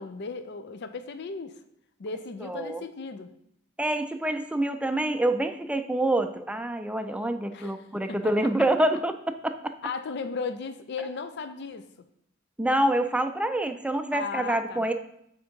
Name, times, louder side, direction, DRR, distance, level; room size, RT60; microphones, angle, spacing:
voice 1, 0.0-1.6 2.0-3.3 7.5-7.8 8.1-8.3 9.8-11.9 14.1-14.9, left 4 dB, 55° left, 11 dB, 0.5 m, -36 dB
voice 2, 2.4-2.8 3.8-9.7 12.6-14.9, right 1 dB, 5° right, 7 dB, 0.4 m, -26 dB
7.9 x 3.6 x 5.2 m, 0.74 s
head